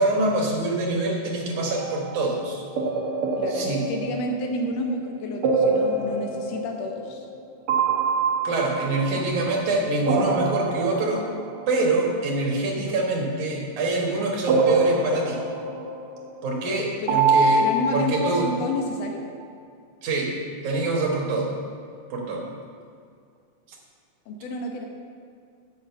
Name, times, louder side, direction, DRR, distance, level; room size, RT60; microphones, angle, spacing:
voice 1, 0.0-2.6 3.5-3.8 8.4-11.2 11.7-15.4 16.4-17.6 17.9-18.5 20.0-20.3 20.6-21.5 22.1-22.5, right 2 dB, 85° right, -1 dB, 2.9 m, -25 dB
sound 1, 1.7-2.2 2.8-4.8 5.4-7.4 7.7-9.7 10.0-11.8 14.5-16.3 17.1-19.1, right 3 dB, 65° right, 1.6 m, -25 dB
voice 2, 3.4-7.3 8.9-9.3 16.7-17.2 17.6-19.2 24.3-24.9, left 2 dB, 70° left, 2 dB, 2.1 m, -30 dB
7.4 x 6.2 x 7.3 m, 2.3 s
omnidirectional pair, 3.3 m